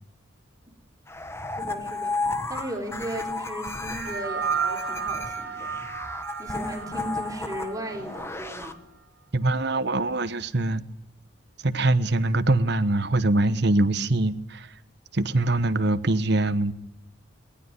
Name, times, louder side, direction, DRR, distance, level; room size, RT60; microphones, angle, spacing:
sound 1, 1.1-8.7, left 3 dB, 15° left, 1.1 m, -33 dB
voice 1, 1.6-5.7 6.4-8.8, right 1 dB, 15° right, 3.7 m, -36 dB
sound 2, 3.9-8.5, right 6 dB, 70° right, 4.6 m, -33 dB
voice 2, 9.3-10.8 11.6-14.7 15.1-16.7, right 2 dB, 55° right, 1.1 m, -23 dB
20.0 x 20.0 x 9.7 m
head